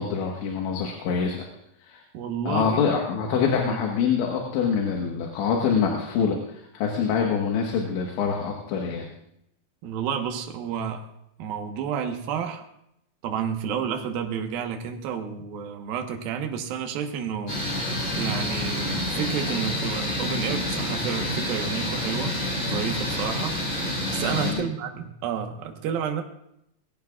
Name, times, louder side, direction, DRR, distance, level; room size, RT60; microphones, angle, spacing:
voice 1, 0.0-1.5 1.9-2.0 2.5-9.1 24.2-24.7, left 6 dB, 85° left, 0 dB, 3.7 m, -25 dB
voice 2, 2.1-2.8 3.6-3.8 9.8-11.1 11.4-12.6 13.2-17.6 18.2-22.3 22.6-23.6 24.1-26.2, right 7 dB, 65° right, 4 dB, 2.6 m, -30 dB
sound 1, 17.5-24.5, left 1 dB, 25° left, 6.6 m, -28 dB
21.0 x 16.0 x 2.4 m, 0.78 s
omnidirectional pair, 5.2 m